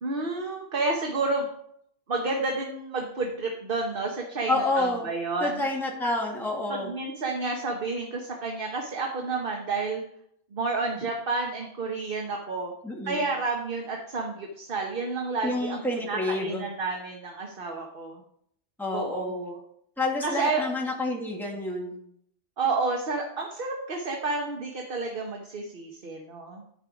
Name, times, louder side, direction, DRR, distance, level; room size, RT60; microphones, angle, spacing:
voice 1, 0.0-1.5 2.1-5.6 6.7-10.0 10.5-12.7 13.0-18.2 18.9-19.6 20.2-20.6 22.6-26.6, right 3 dB, 50° right, 1 dB, 1.3 m, -30 dB
voice 2, 4.5-5.1 5.4-6.9 12.8-13.2 15.4-16.6 18.8-19.3 20.0-21.9, left 2 dB, ahead, -3 dB, 2.0 m, -29 dB
12.0 x 5.5 x 5.2 m, 0.70 s
omnidirectional pair, 1.2 m